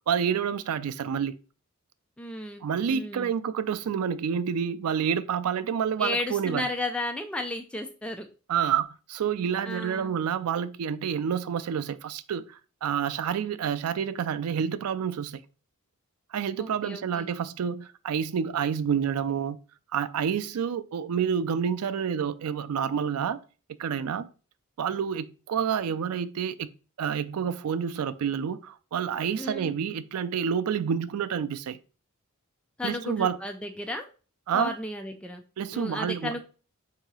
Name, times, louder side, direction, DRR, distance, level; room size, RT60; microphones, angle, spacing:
voice 1, 0.1-1.4 2.6-6.7 8.5-15.4 16.3-19.6 19.9-23.4 23.8-24.3 24.8-26.7 27.0-31.8 32.8-33.4 34.5-34.7 35.6-36.4, right 7 dB, 80° right, 0.4 m, -28 dB
voice 2, 2.2-2.6 2.9-3.3 6.0-8.3 9.6-10.2 16.6-17.3 29.4-29.7 32.8-34.1 34.5-35.4 35.7-36.4, left 2 dB, 5° left, 0.3 m, -33 dB
3.9 x 2.7 x 4.7 m
head